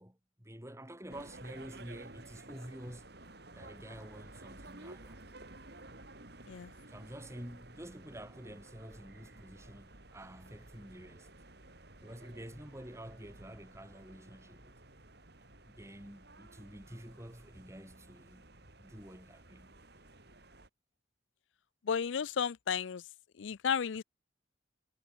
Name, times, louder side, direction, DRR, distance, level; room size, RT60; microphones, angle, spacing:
voice 1, 0.0-3.0 3.5-5.2 6.9-11.3 12.0-14.7 15.7-18.5 18.8-19.8, equal, 15° right, 5.9 m, -49 dB
sound 1, 1.1-20.7, right 2 dB, 55° right, 4.7 m, -54 dB
voice 2, 21.8-23.0 23.4-24.0, left 7 dB, 75° left, 0.5 m, -33 dB
head